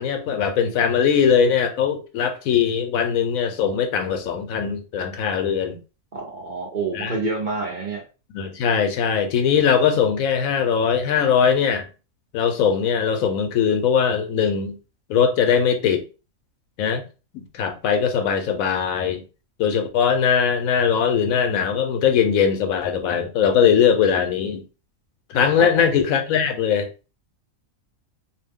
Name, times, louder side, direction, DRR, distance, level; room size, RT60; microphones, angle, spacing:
voice 1, 0.0-5.8 6.9-7.1 8.3-11.9 12.3-14.8 15.1-16.1 16.8-17.0 17.3-19.2 19.6-24.6 25.3-26.9, left 7 dB, 85° left, 1.0 m, -20 dB
voice 2, 6.1-8.0 25.6-25.9, right 3 dB, 50° right, 0.6 m, -28 dB
2.6 x 2.1 x 3.4 m
omnidirectional pair, 1.4 m